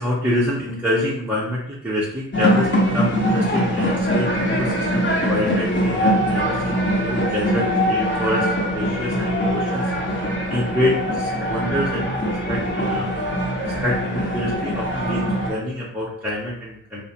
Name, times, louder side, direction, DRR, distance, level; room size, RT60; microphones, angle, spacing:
voice 1, 0.0-13.1 13.6-17.0, left 1 dB, 5° right, -7 dB, 0.7 m, -26 dB
sound 1, 2.3-15.5, equal, 30° left, 1.1 m, -22 dB
2.5 x 2.0 x 3.2 m, 0.69 s
hypercardioid pair, 50°, 39 cm